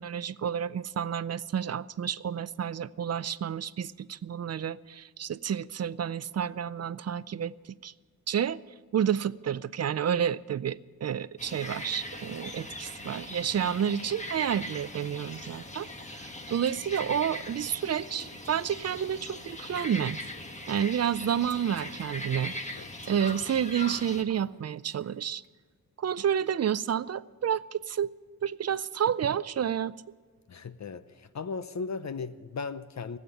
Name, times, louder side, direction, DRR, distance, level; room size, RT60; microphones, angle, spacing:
voice 1, 0.0-7.5 7.8-7.9 8.3-8.6 8.9-20.2 20.7-25.4 26.0-28.1 28.4-29.9, right 8 dB, 45° right, 18 dB, 0.4 m, -30 dB
sound 1, 11.4-24.2, left 1 dB, 20° left, 1.3 m, -40 dB
Female speech woman speaking, 16.6-20.9 21.5-25.5, right 6 dB, 65° right, 1.2 m, -55 dB
voice 2, 30.5-33.2, left 4 dB, 50° left, 13 dB, 0.6 m, -37 dB
16.5 x 8.7 x 8.9 m, 1.5 s
wide cardioid pair, 105°, 36 cm